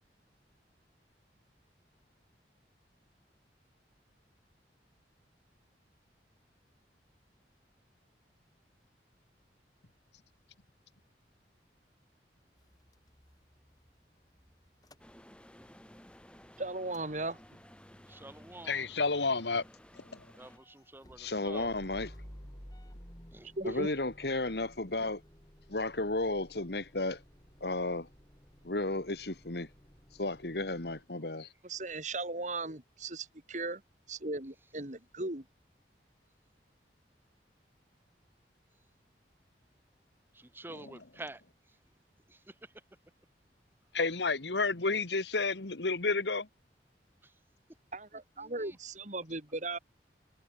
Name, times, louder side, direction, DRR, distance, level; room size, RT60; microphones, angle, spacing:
Motor vehicle (road) / Engine starting / Idling, 12.6-15.7 16.1-31.0, equal, 20° left, 5.4 m, -56 dB
sound 1, 15.0-20.6, equal, 5° left, 6.0 m, -56 dB
voice 1, 16.6-17.4 23.6-23.9 31.6-33.8 34.1-35.4 47.9-49.8, right 2 dB, 45° right, 3.2 m, -37 dB
voice 2, 18.1-18.9 20.4-21.7 23.3-23.8 40.3-41.4 42.3-42.5 47.2-47.3 48.4-48.8, right 2 dB, 10° right, 1.2 m, -48 dB
voice 3, 18.6-19.6 20.0-20.2 40.7-41.0 43.9-46.5, left 4 dB, 85° left, 1.7 m, -31 dB
voice 4, 21.2-22.1 23.6-25.2 25.7-27.2 27.6-28.1 28.6-29.7 30.2-31.5, left 2 dB, 65° left, 2.0 m, -33 dB
head